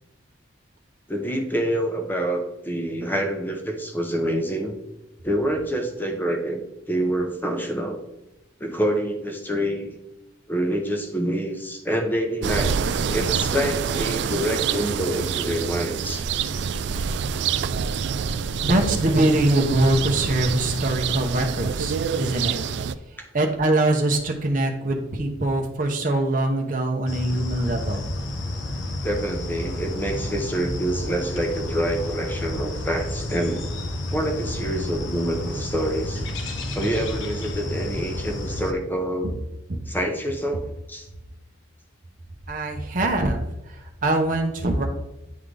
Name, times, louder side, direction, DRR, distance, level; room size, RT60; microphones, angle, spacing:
voice 1, 1.1-4.8 5.2-6.6 6.9-8.0 8.6-10.0 10.5-12.7 13.1-16.2 22.7-22.8 23.2-23.3 29.0-33.7 34.1-36.3 36.7-39.3 39.9-41.1, right 1 dB, 10° left, 3 dB, 0.8 m, -26 dB
sound 1, 12.4-22.9, right 6 dB, 60° right, 0.3 m, -26 dB
voice 2, 18.6-22.6 23.3-28.0 42.5-44.9, right 1 dB, 40° right, 2 dB, 0.8 m, -23 dB
sound 2, 27.1-38.7, left 1 dB, 75° left, 0.9 m, -30 dB
9.3 x 3.8 x 3.3 m, 0.95 s
head